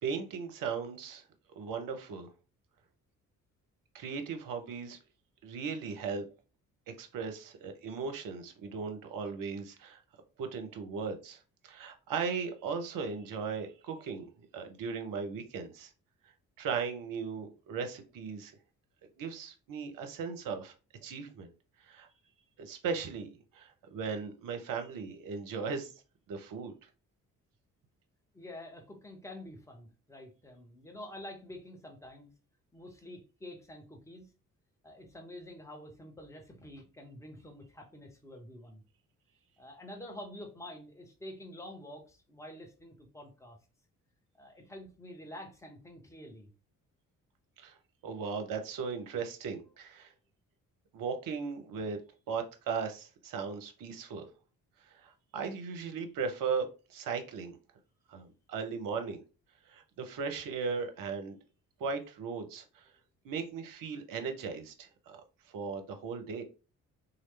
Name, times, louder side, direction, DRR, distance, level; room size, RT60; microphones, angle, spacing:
voice 1, 0.0-1.2 1.6-2.3 3.9-5.0 5.4-6.2 7.0-10.0 10.4-15.9 16.6-18.6 19.2-20.7 21.0-21.5 21.8-22.1 22.6-25.9 26.3-26.9 47.6-47.8 48.0-50.1 50.9-52.0 52.3-54.3 54.8-57.6 58.1-59.2 59.7-61.4 61.8-62.9 63.2-66.4, right 5 dB, 50° right, 6 dB, 0.7 m, -37 dB
voice 2, 28.3-32.3 32.7-34.3 34.8-38.8 39.6-43.6 44.3-46.5, left 1 dB, 5° left, 1 dB, 1.0 m, -48 dB
3.0 x 2.4 x 3.2 m, 0.33 s
figure-of-eight pair, 40°, 44 cm